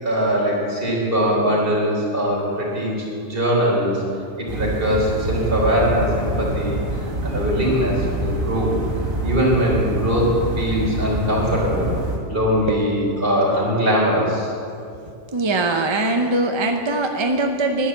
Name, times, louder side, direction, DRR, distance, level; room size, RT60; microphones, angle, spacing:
voice 1, 0.0-4.0 4.4-6.8 7.2-8.7 9.2-10.3 10.6-11.9 12.3-14.5, equal, 45° right, -4 dB, 3.9 m, -21 dB
sound 1, 4.5-12.2, right 1 dB, 85° right, 2.2 m, -26 dB
voice 2, 15.3-17.9, right 2 dB, 30° right, 4 dB, 0.6 m, -21 dB
11.5 x 10.5 x 7.2 m, 2.5 s
omnidirectional pair, 1.3 m